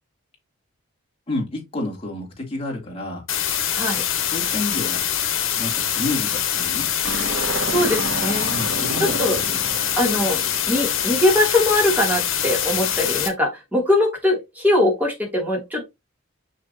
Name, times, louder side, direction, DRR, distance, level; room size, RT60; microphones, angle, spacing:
voice 1, 1.3-3.2 4.3-5.0 5.6-6.9 8.5-9.6, left 2 dB, 25° left, 3.1 m, -30 dB
sound 1, 3.3-13.3, left 9 dB, 70° left, 1.8 m, -24 dB
voice 2, 3.7-4.0 7.7-8.5 9.0-9.4 10.0-10.4 10.7-15.8, left 1 dB, 10° right, 2.8 m, -21 dB
sound 2, 7.0-11.4, right 2 dB, 55° right, 1.0 m, -31 dB
6.4 x 6.0 x 2.8 m
head